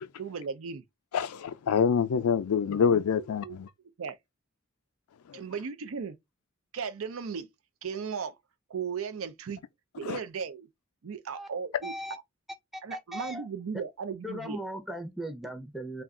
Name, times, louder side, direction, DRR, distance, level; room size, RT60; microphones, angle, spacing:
voice 1, 0.2-0.8 3.4-3.6 4.0-4.2 5.3-6.2 6.7-7.5 7.8-8.4 8.7-9.6 10.0-10.7 11.0-12.2 12.8-14.6, right 6 dB, 65° right, 0.5 m, -36 dB
voice 2, 1.1-3.7 10.0-10.2, left 6 dB, 90° left, 0.4 m, -26 dB
voice 3, 11.8-12.2 12.7-13.5 14.2-16.0, equal, ahead, 0.5 m, -38 dB
2.4 x 2.2 x 3.6 m
head